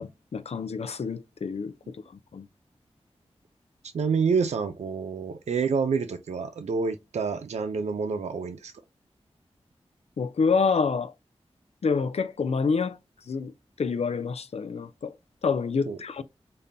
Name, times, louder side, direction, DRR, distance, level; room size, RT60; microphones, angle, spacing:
voice 1, 0.0-2.0 2.3-2.5 10.2-11.1 11.8-13.0 13.3-13.5 13.8-15.1 15.4-16.2, left 5 dB, 65° left, 0.5 m, -27 dB
voice 2, 3.9-8.7 15.9-16.0, right 5 dB, 85° right, 0.5 m, -28 dB
5.3 x 2.2 x 2.6 m
wide cardioid pair, 60°, 11 cm